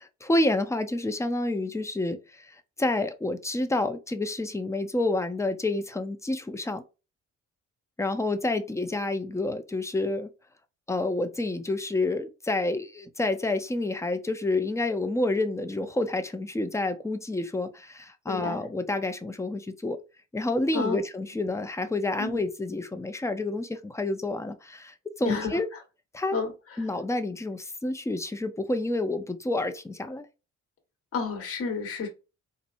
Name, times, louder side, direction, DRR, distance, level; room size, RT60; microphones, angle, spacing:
voice 1, 0.2-6.8 8.0-10.3 10.9-20.0 20.3-25.7 26.1-26.4 26.8-30.3, left 2 dB, 10° left, 0.6 m, -29 dB
voice 2, 18.3-18.6 20.7-21.0 22.2-22.4 25.2-25.8 26.3-26.9 31.1-32.1, left 5 dB, 50° left, 1.5 m, -31 dB
4.3 x 2.6 x 2.6 m
cardioid pair, 90°, 30 cm